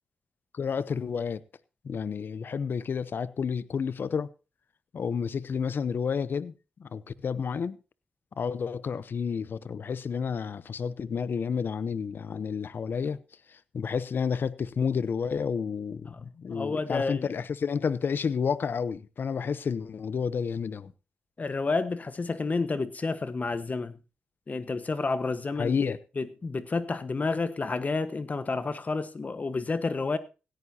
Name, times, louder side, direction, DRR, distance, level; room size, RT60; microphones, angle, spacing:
voice 1, 0.5-1.4 1.8-4.3 4.9-6.5 6.8-7.8 8.4-13.2 13.5-20.9 25.6-26.0, left 6 dB, 60° left, 0.8 m, -30 dB
voice 2, 16.5-17.3 21.4-24.0 24.5-30.2, left 3 dB, 40° left, 1.3 m, -30 dB
16.5 x 14.5 x 2.8 m
supercardioid pair, 50°, 4 cm